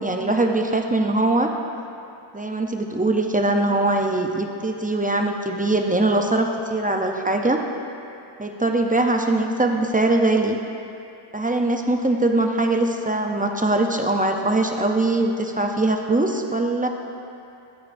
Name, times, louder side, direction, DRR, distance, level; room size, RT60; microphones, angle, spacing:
voice 1, 0.0-1.5 2.3-7.6 8.4-10.6 11.3-16.9, right 2 dB, 20° right, 3 dB, 0.5 m, -22 dB
12.5 x 9.5 x 2.6 m, 2.7 s
wide cardioid pair, 105°, 48 cm